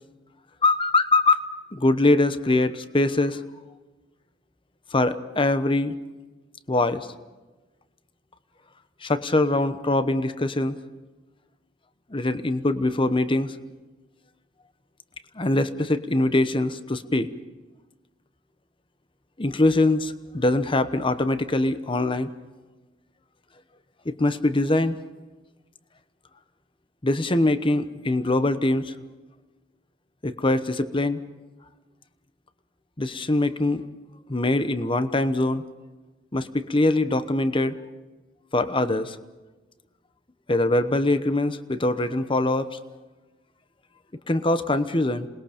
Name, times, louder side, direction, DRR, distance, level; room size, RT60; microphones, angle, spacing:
voice 1, 0.6-1.4 1.7-3.4 4.9-6.0 6.7-7.1 9.0-10.8 12.1-13.6 15.3-17.3 19.4-22.3 24.0-25.0 27.0-28.9 30.2-31.2 33.0-33.8 34.3-35.6 36.3-37.8 38.5-39.2 40.5-42.8 44.3-45.3, left 2 dB, 25° left, 11 dB, 1.0 m, -23 dB
27.5 x 20.5 x 5.1 m, 1.2 s
head